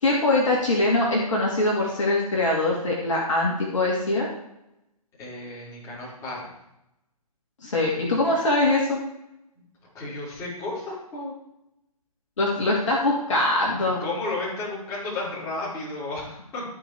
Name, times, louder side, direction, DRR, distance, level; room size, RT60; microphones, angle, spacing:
voice 1, 0.0-4.3 7.6-9.0 12.4-14.0, left 2 dB, 55° left, -3 dB, 2.5 m, -23 dB
voice 2, 5.2-6.5 9.9-11.3 13.7-16.6, left 2 dB, 15° left, -8 dB, 4.2 m, -33 dB
13.5 x 4.7 x 4.9 m, 0.86 s
figure-of-eight pair, 135°, 19 cm